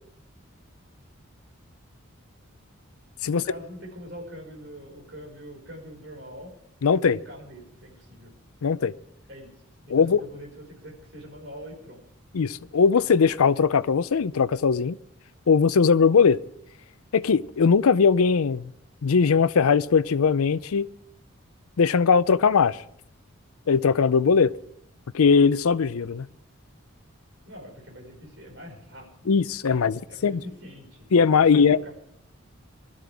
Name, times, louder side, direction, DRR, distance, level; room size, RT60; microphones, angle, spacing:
voice 1, 3.2-6.5 7.1-8.3 9.3-12.0 27.4-29.4 29.8-31.1 31.4-31.9, equal, 55° right, 5.4 m, -43 dB
voice 2, 6.8-7.2 8.6-8.9 9.9-10.2 12.3-15.0 15.5-16.4 17.1-18.7 19.0-20.9 21.8-22.8 23.7-24.5 25.1-26.3 29.3-30.4 31.1-31.8, left 5 dB, 85° left, 0.5 m, -20 dB
22.0 x 13.5 x 3.5 m
head